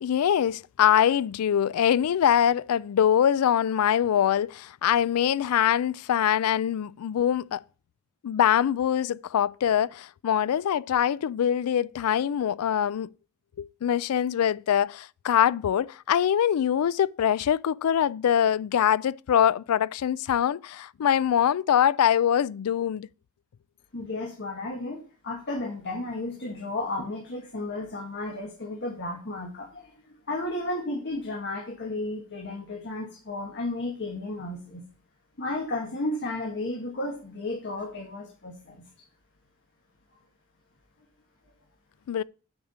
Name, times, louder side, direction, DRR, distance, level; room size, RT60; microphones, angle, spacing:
voice 1, 0.0-7.6 8.2-13.1 13.6-23.1 42.1-42.2, left 9 dB, 85° left, 0.3 m, -23 dB
voice 2, 23.9-34.8 35.4-38.8, left 2 dB, 55° left, 1.9 m, -33 dB
8.8 x 4.9 x 7.2 m
head